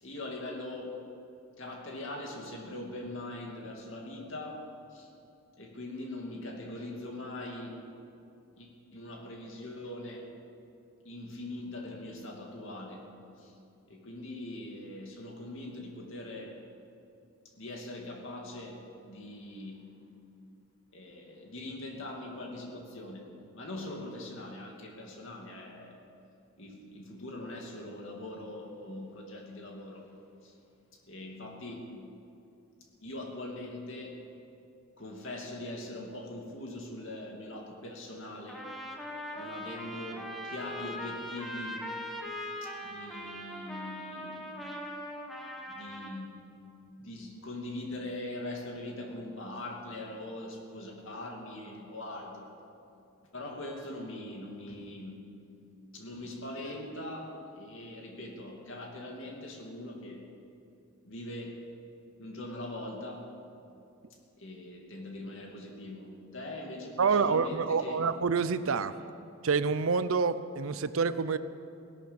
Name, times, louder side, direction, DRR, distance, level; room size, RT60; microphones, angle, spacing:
voice 1, 0.0-1.0 1.6-4.6 4.9-5.1 5.6-7.8 8.6-10.3 11.0-13.1 13.4-13.5 13.9-16.6 17.6-19.8 20.9-23.3 23.5-26.0 26.6-30.1 30.4-30.6 30.9-31.9 33.0-34.2 35.0-38.7 39.3-41.8 42.6-44.6 45.7-46.5 47.0-52.6 53.3-55.5 55.9-60.3 61.0-61.7 62.2-63.3 64.4-68.0, left 1 dB, 60° left, 0 dB, 2.6 m, -42 dB
Trumpet, 38.5-46.2, left 1 dB, ahead, 1.3 m, -40 dB
voice 2, 67.0-68.9 69.4-71.4, right 5 dB, 65° right, 13 dB, 0.6 m, -27 dB
17.0 x 12.0 x 7.1 m, 2.6 s
head